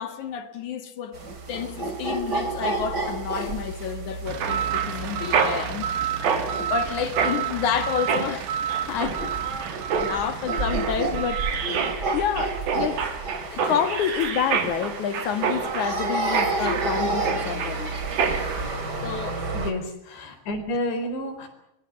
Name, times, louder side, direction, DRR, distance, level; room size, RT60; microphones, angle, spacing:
voice 1, 0.0-5.9 6.7-8.5 8.9-9.3 9.9-13.1 13.5-17.9 19.0-19.4, left 8 dB, 60° left, 2.4 m, -29 dB
sound 1, 1.1-19.7, right 3 dB, 30° right, 2.6 m, -31 dB
sound 2, 4.3-11.9, right 9 dB, 90° right, 3.9 m, -31 dB
Mechanisms, 4.4-18.6, right 6 dB, 60° right, 4.2 m, -29 dB
voice 2, 19.5-21.5, left 1 dB, 80° left, 6.5 m, -30 dB
25.5 x 22.0 x 7.2 m
omnidirectional pair, 4.9 m